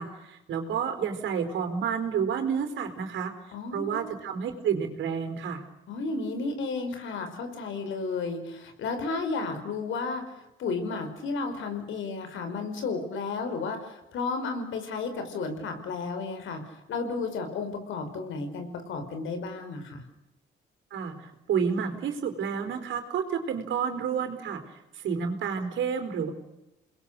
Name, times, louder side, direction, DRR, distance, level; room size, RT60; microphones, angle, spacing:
voice 1, 0.0-3.3 3.7-5.6 20.9-24.6 24.9-26.3, right 7 dB, 75° right, 7 dB, 4.5 m, -30 dB
voice 2, 3.5-4.1 5.9-10.2 10.6-20.0, left 4 dB, 75° left, 7 dB, 5.2 m, -33 dB
29.0 x 21.0 x 6.7 m, 0.95 s
cardioid pair, 90°, 20 cm